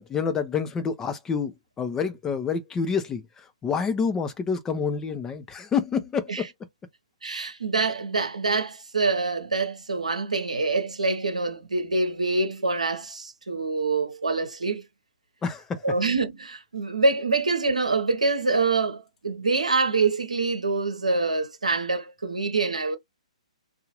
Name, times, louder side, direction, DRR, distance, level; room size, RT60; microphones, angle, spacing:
voice 1, 0.0-6.5 15.4-15.9, left 6 dB, 15° left, 0.5 m, -28 dB
voice 2, 7.2-14.9 15.8-23.0, right 3 dB, 80° right, 0.8 m, -25 dB
2.8 x 2.3 x 2.9 m
figure-of-eight pair, 125°, 4 cm